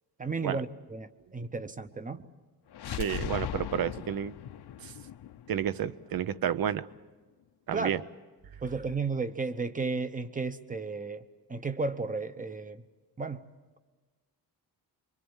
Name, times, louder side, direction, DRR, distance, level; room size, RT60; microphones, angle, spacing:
voice 1, 0.2-2.2 7.7-8.0 8.6-12.8 13.2-13.4, right 4 dB, 20° right, 11 dB, 0.9 m, -33 dB
sound 1, 2.7-6.6, left 10 dB, 70° left, 0.9 m, -39 dB
voice 2, 2.9-4.3 4.8-4.9 5.5-6.9 7.7-8.0, right 9 dB, 55° right, 15 dB, 0.7 m, -31 dB
26.0 x 24.0 x 7.2 m, 1.3 s
wide cardioid pair, 150°, 41 cm